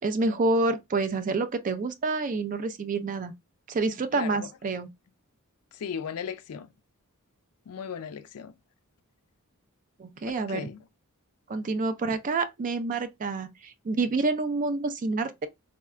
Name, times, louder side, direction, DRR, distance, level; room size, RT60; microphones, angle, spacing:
voice 1, 0.0-3.3 3.7-4.9 10.0-10.7 11.5-15.5, right 3 dB, 35° right, 0.4 m, -28 dB
voice 2, 4.2-4.5 5.7-6.7 7.7-8.5 10.5-10.8, left 7 dB, 70° left, 0.4 m, -36 dB
3.6 x 2.1 x 2.3 m
head